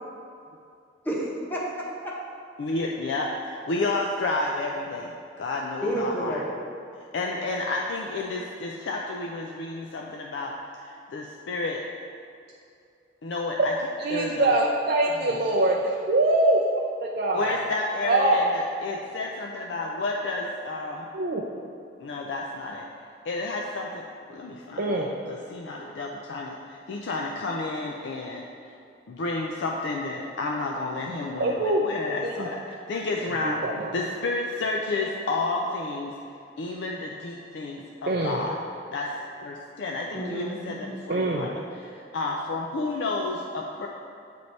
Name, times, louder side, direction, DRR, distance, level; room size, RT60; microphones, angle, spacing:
voice 1, 1.0-2.1 5.8-6.4 40.1-40.7, right 1 dB, 10° left, -5 dB, 0.9 m, -30 dB
voice 2, 2.6-5.1 5.4-6.4 7.1-11.8 13.2-13.7 14.1-14.6 15.3-15.4 17.3-21.1 22.0-22.9 23.3-25.0 25.3-28.4 29.1-33.6 33.9-36.1 36.6-38.6 38.9-39.1 39.4-43.9, left 3 dB, 75° left, 0 dB, 0.4 m, -31 dB
voice 3, 14.0-16.6 17.0-17.6 18.0-18.4 21.1-21.4 24.8-25.1 31.4-31.9 32.2-32.5 33.4-34.0 38.1-38.4 41.1-41.5, right 2 dB, 55° right, -1 dB, 0.4 m, -24 dB
8.4 x 3.3 x 4.0 m, 2.5 s
head